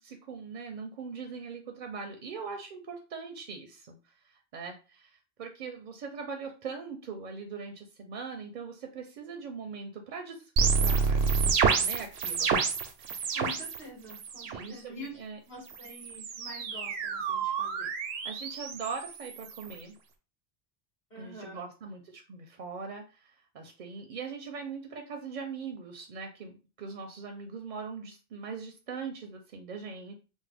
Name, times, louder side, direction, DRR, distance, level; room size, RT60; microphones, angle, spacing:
voice 1, 0.0-12.5 13.2-13.4 14.5-15.4 18.2-20.0 21.2-30.1, right 5 dB, 55° right, 4 dB, 0.6 m, -41 dB
sound 1, 10.6-13.8 14.1-14.6 15.7-19.8, right 5 dB, 90° right, 0.8 m, -29 dB
voice 2, 13.3-17.9 21.1-21.6, left 1 dB, 45° left, -5 dB, 2.0 m, -46 dB
3.5 x 2.1 x 3.3 m, 0.33 s
omnidirectional pair, 1.0 m